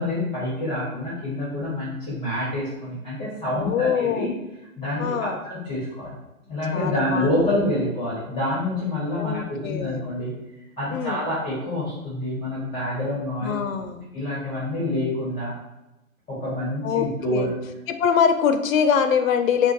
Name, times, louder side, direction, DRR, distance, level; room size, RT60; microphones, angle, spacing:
voice 1, 0.0-4.3 4.8-6.1 6.5-10.3 10.8-13.5 14.1-15.5 16.3-17.5, left 1 dB, 10° left, -8 dB, 0.6 m, -27 dB
voice 2, 3.5-4.3 5.0-5.4 6.7-7.5 9.2-10.1 10.9-11.3 13.4-14.1 16.8-17.5 17.9-19.7, left 7 dB, 70° left, 8 dB, 0.5 m, -23 dB
2.3 x 2.2 x 3.7 m, 0.95 s
figure-of-eight pair, 120°, 42 cm